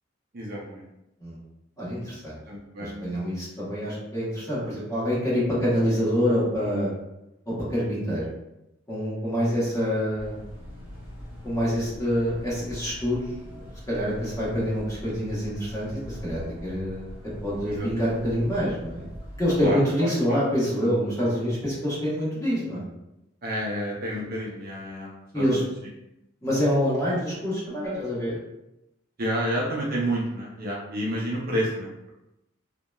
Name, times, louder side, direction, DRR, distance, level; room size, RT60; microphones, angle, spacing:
voice 1, 0.3-0.8 2.5-3.1 17.7-17.9 19.6-20.4 23.4-25.1 25.3-25.6 29.2-32.1, equal, 50° right, -4 dB, 0.6 m, -30 dB
voice 2, 1.8-2.4 2.8-6.9 7.5-8.2 8.9-10.4 11.4-13.2 13.5-17.1 17.4-19.1 19.4-22.9 25.3-25.6 26.4-28.4 31.2-31.3, equal, 20° left, -9 dB, 1.1 m, -26 dB
sound 1, 10.2-19.8, equal, 5° right, 1.2 m, -42 dB
2.8 x 2.1 x 2.2 m, 0.89 s
head